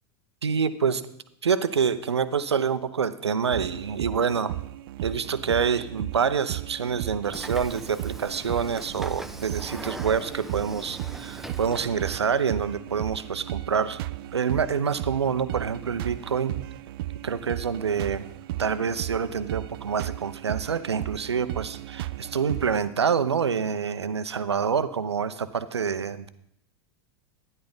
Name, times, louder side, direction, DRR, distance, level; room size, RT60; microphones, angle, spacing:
voice 1, 0.4-1.0 1.4-4.6 5.0-14.0 14.3-16.6 17.2-18.3 18.6-26.3, right 6 dB, 85° right, 13 dB, 0.7 m, -27 dB
sound 1, 3.5-22.9, right 16 dB, 60° right, 0.4 m, -35 dB
Train / Sliding door, 7.2-12.3, right 1 dB, ahead, 0.9 m, -41 dB
13.0 x 10.0 x 4.0 m, 0.77 s
figure-of-eight pair, 90°, 14 cm